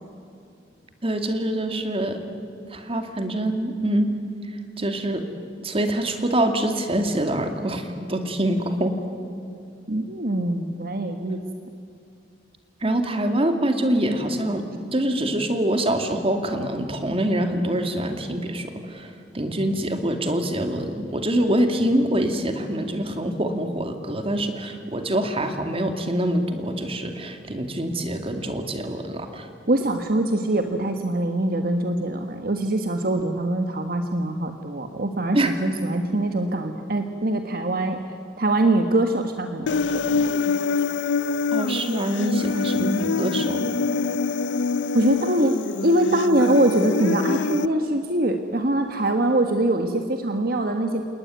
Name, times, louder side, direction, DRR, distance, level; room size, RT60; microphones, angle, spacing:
voice 1, 1.0-2.2 2.7-4.1 4.5-5.2 5.6-8.9 12.8-14.6 14.9-29.5 35.3-35.5 41.5-43.8, right 1 dB, 30° right, 6 dB, 2.5 m, -25 dB
voice 2, 9.9-11.4 29.7-38.0 38.4-40.7 44.9-51.0, right 1 dB, 55° right, 6 dB, 1.4 m, -23 dB
Human voice, 39.7-47.6, left 4 dB, 80° left, 0.5 m, -25 dB
29.0 x 19.0 x 9.5 m, 2.5 s
head